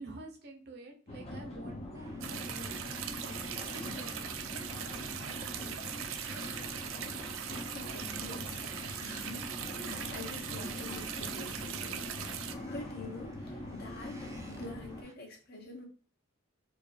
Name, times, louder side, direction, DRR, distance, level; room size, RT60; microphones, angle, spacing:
voice 1, 0.0-3.4 3.7-4.5, right 2 dB, 55° right, 3 dB, 1.0 m, -49 dB
sound 1, 1.1-15.0, left 1 dB, 30° left, 0.8 m, -43 dB
Wind, 1.9-15.1, right 2 dB, 15° right, 0.6 m, -56 dB
sound 2, 2.2-12.5, right 9 dB, 80° right, 0.4 m, -40 dB
voice 2, 7.7-9.5 9.8-12.1 12.6-14.2 14.4-15.9, left 2 dB, 50° left, 0 dB, 1.2 m, -46 dB
4.6 x 2.6 x 2.5 m, 0.39 s
head